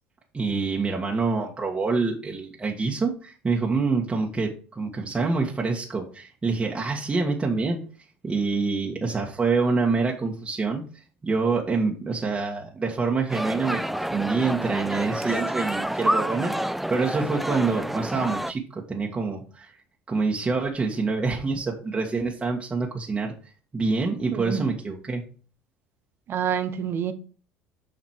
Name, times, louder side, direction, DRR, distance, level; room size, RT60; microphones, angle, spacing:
voice 1, 0.3-7.8 8.2-10.8 11.2-19.7 20.1-23.3 23.7-25.2, right 4 dB, 20° right, 1.7 m, -26 dB
sound 1, 13.3-18.5, right 1 dB, 5° right, 0.3 m, -28 dB
voice 2, 24.3-24.6 26.3-27.1, right 8 dB, 45° right, 0.9 m, -27 dB
7.5 x 5.1 x 4.7 m
supercardioid pair, 85°, 5 cm